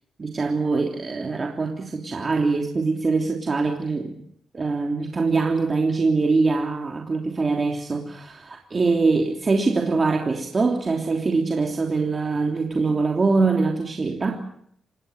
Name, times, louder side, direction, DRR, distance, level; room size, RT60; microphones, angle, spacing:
voice 1, 0.2-4.2 4.5-14.4, right 3 dB, 35° right, 2 dB, 3.1 m, -23 dB
27.5 x 18.5 x 8.0 m, 0.67 s
cardioid pair, 90°, 0 cm